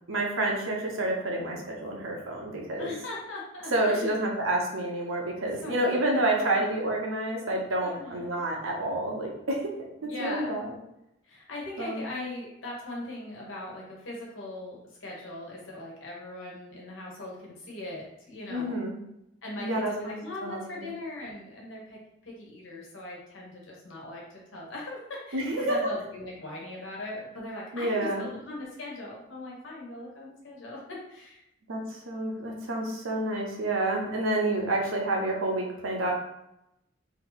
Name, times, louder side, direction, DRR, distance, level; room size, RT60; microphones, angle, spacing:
voice 1, 0.1-2.9 3.7-9.6 10.2-10.8 11.8-12.0 18.5-19.0 19.6-20.2 20.4-20.9 25.3-25.8 27.7-28.3 31.7-31.8 32.1-36.1, right 1 dB, 90° right, -1 dB, 1.0 m, -29 dB
voice 2, 2.8-4.2 5.5-6.6 7.8-8.3 10.0-10.5 11.2-18.8 19.4-31.4, left 2 dB, 75° left, -4 dB, 1.3 m, -40 dB
3.3 x 2.9 x 4.0 m, 0.84 s
head